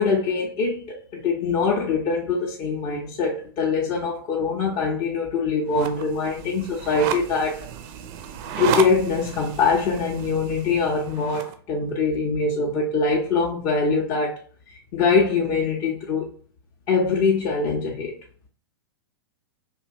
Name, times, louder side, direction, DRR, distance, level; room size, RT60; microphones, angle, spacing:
voice 1, 0.0-7.7 8.6-14.4 14.9-16.3 16.9-18.1, left 4 dB, 40° left, 0.5 m, -23 dB
sound 1, 5.7-11.5, right 7 dB, 40° right, 0.4 m, -32 dB
2.7 x 2.2 x 2.5 m
figure-of-eight pair, 105°, 13 cm